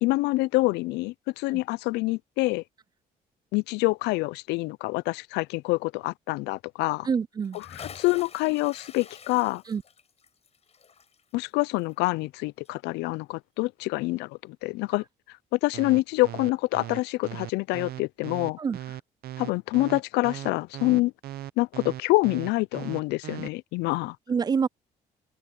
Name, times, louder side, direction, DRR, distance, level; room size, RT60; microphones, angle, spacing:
voice 1, 0.0-2.6 3.5-7.1 7.5-9.6 11.3-15.0 15.5-18.6 19.4-21.1 21.6-24.2, left 21 dB, 90° left, 0.4 m, -26 dB
voice 2, 7.0-7.6 9.7-9.8 18.6-18.8 24.3-24.7, right 6 dB, 25° right, 0.3 m, -26 dB
Bathtub (filling or washing) / Splash splatter, 7.4-12.4 12.6-12.7, left 6 dB, 40° left, 7.8 m, -47 dB
sound 1, 15.7-23.5, right 13 dB, 65° right, 0.7 m, -38 dB
open air
cardioid pair, 110°, 17 cm